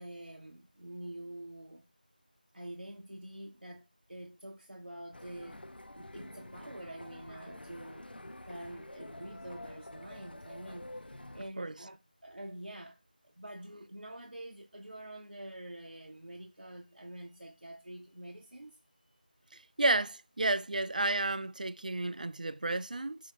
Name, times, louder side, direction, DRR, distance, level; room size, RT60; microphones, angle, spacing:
voice 1, 0.0-1.9 2.5-5.6 5.9-18.8 19.1-19.2 22.1-22.2, right 1 dB, 85° right, 0.7 m, -47 dB
sound 1, 5.1-11.5, left 1 dB, 80° left, 0.5 m, -48 dB
voice 2, 19.8-23.2, right 2 dB, 55° right, 0.3 m, -31 dB
5.3 x 2.1 x 4.1 m
figure-of-eight pair, 170°, 5 cm